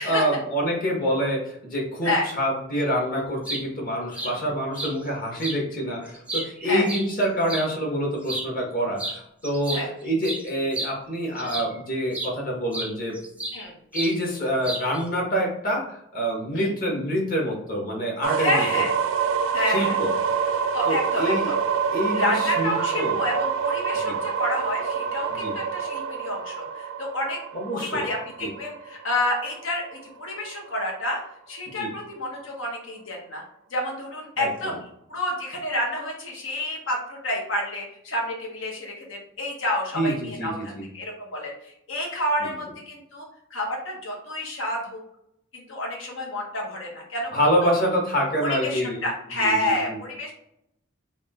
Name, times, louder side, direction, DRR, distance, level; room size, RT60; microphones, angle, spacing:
voice 1, 0.0-13.2 13.9-18.8 19.6-20.1 20.8-21.5 21.9-23.2 24.0-24.2 25.3-25.5 27.5-28.0 28.4-28.5 31.7-31.9 34.4-34.7 39.9-40.9 42.4-42.5 47.3-49.1 49.4-50.0, equal, 45° left, -1 dB, 1.4 m, -26 dB
sound 1, 3.2-3.6 4.1-4.3 4.8-4.9 5.4-5.6 6.1-7.7 8.2-8.5 9.0-9.2 9.4-11.8 12.1-12.3 12.7-13.6 13.9-14.2 14.6-15.0, right 2 dB, 5° right, 0.6 m, -32 dB
sound 2, 18.2-30.0, right 6 dB, 70° right, 0.3 m, -27 dB
voice 2, 18.4-18.9 19.5-20.0 20.7-21.5 22.1-27.4 27.7-31.2 31.5-33.4 33.7-34.8 35.1-45.0 45.5-47.7 48.4-50.3, left 1 dB, 75° left, -1 dB, 1.3 m, -29 dB
3.6 x 2.7 x 3.6 m, 0.75 s
head